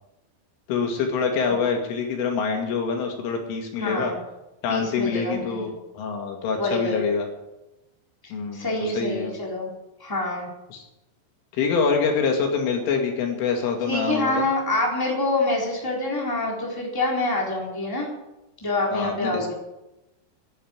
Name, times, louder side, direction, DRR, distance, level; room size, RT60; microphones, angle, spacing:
voice 1, 0.7-4.1 4.6-7.3 8.3-9.3 10.7-10.9 11.5-14.4 18.9-19.5, left 5 dB, 90° left, 2 dB, 4.9 m, -25 dB
voice 2, 3.8-4.2 4.7-5.8 6.6-7.1 8.2-9.7 10.0-10.5 13.9-18.1 18.6-19.5, left 2 dB, 5° left, -3 dB, 3.4 m, -26 dB
11.0 x 11.0 x 9.9 m, 0.97 s
omnidirectional pair, 5.5 m